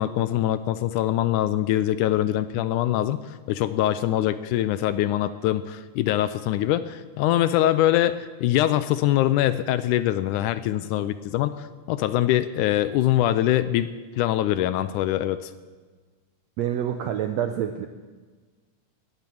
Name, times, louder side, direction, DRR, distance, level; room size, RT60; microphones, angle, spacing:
voice 1, 0.0-13.9 14.2-15.5, left 13 dB, 80° left, 13 dB, 1.9 m, -23 dB
voice 2, 16.6-17.9, right 10 dB, 80° right, 7 dB, 1.5 m, -27 dB
19.0 x 9.0 x 7.7 m, 1.4 s
omnidirectional pair, 3.8 m